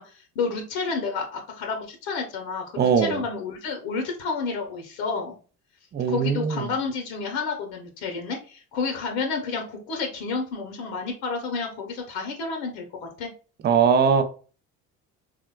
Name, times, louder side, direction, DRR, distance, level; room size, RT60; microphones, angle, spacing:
voice 1, 0.0-5.4 6.1-13.3, left 4 dB, 80° left, 0.8 m, -30 dB
voice 2, 2.7-3.2 5.9-6.7 13.6-14.2, right 6 dB, 25° right, 0.4 m, -21 dB
3.3 x 2.1 x 2.2 m
hypercardioid pair, 70°, 40 cm